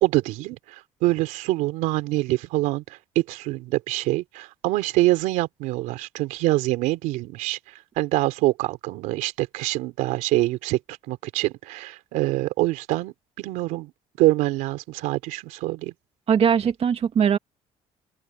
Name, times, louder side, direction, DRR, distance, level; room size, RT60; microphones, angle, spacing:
voice 1, 0.0-0.6 1.0-2.8 3.1-7.6 8.0-10.8 11.1-13.9 14.2-15.9, right 18 dB, 90° right, 3.3 m, -25 dB
voice 2, 16.3-17.4, right 7 dB, 50° right, 2.1 m, -20 dB
open air
supercardioid pair, 85°, 13 cm